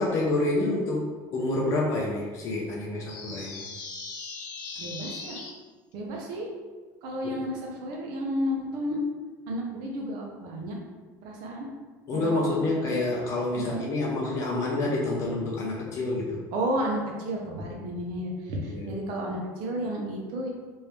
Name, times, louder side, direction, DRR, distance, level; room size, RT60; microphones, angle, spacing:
voice 1, 0.0-3.6 7.2-7.4 12.1-16.4 18.6-18.9, left 2 dB, 40° left, -3 dB, 0.5 m, -28 dB
sound 1, 3.1-5.5, left 4 dB, 90° left, 0.8 m, -39 dB
voice 2, 4.8-5.4 5.9-6.5 7.0-9.0 9.5-10.8 11.2-11.7 12.1-13.0 13.5-13.8 16.5-20.5, equal, 55° right, -1 dB, 0.8 m, -32 dB
3.0 x 2.7 x 3.3 m, 1.3 s
cardioid pair, 175°, 8 cm